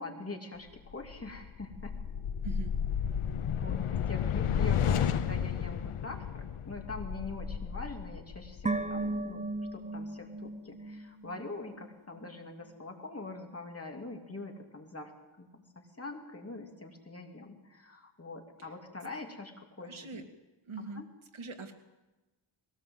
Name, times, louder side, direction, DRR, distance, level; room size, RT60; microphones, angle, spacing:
voice 1, 0.0-1.9 3.5-9.5 9.7-15.1 15.4-20.2 20.8-21.1, left 2 dB, 30° left, 2 dB, 2.7 m, -44 dB
sound 1, 0.9-9.3, left 8 dB, 85° left, 1.0 m, -32 dB
sound 2, 8.7-12.0 12.2-12.3, right 2 dB, 15° right, 0.7 m, -36 dB
voice 2, 19.8-20.2 20.7-21.1 21.3-21.7, right 3 dB, 70° right, 5 dB, 2.2 m, -42 dB
21.5 x 17.5 x 7.8 m, 1.1 s
wide cardioid pair, 140°, 50 cm